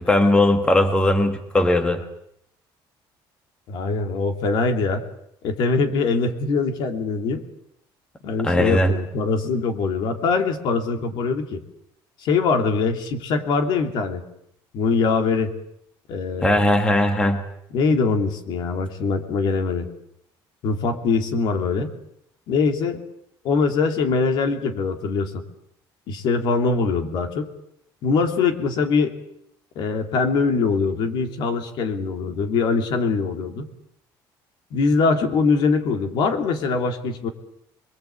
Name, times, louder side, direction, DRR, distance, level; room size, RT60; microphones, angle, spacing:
voice 1, 0.0-2.0 8.4-8.9 16.4-17.4, left 1 dB, 10° left, 7 dB, 1.6 m, -18 dB
voice 2, 3.7-5.0 5.4-7.4 8.2-11.6 12.2-14.2 14.7-15.5 16.1-16.6 17.7-19.9 20.6-21.9 22.5-23.0 23.4-25.4 26.1-27.5 28.0-29.2 29.7-33.7 34.7-37.3, left 4 dB, 55° left, 5 dB, 3.0 m, -22 dB
25.5 x 22.5 x 8.5 m, 0.75 s
cardioid pair, 170°, 9 cm